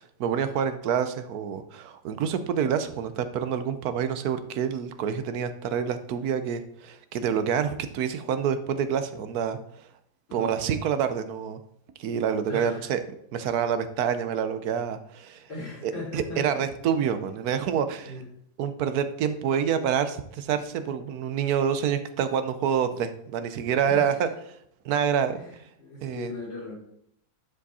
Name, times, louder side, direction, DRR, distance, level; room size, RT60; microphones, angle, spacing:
voice 1, 0.0-9.9 10.3-11.6 12.0-13.0 13.3-15.5 15.8-18.1 18.6-24.6 24.8-25.4 26.0-26.3, right 8 dB, 65° right, 10 dB, 1.0 m, -27 dB
voice 2, 12.5-13.0 15.5-16.6 18.1-18.2 23.9-24.2 25.3-25.5 25.8-26.8, left 2 dB, 75° left, -5 dB, 3.7 m, -38 dB
10.5 x 5.0 x 4.2 m, 0.70 s
omnidirectional pair, 2.0 m